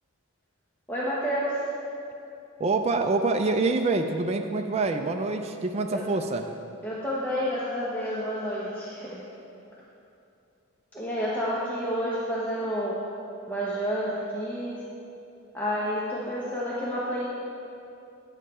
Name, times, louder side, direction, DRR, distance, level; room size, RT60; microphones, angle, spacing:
voice 1, 0.9-1.7 5.9-6.0 6.8-9.3 10.9-13.0 13.5-14.8 15.5-17.3, equal, 10° left, -8 dB, 0.9 m, -29 dB
voice 2, 2.6-6.4, right 3 dB, 30° right, 4 dB, 0.4 m, -26 dB
9.8 x 7.3 x 4.3 m, 2.7 s
head